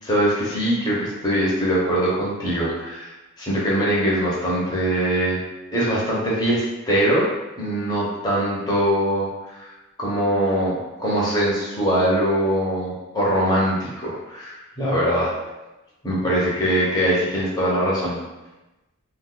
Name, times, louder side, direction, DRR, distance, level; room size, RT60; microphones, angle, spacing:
voice 1, 0.0-3.1 3.4-5.4 5.7-7.3 7.6-9.7 10.0-15.3 16.0-18.2, right 1 dB, 20° left, -7 dB, 0.9 m, -22 dB
2.5 x 2.3 x 3.8 m, 1.0 s
head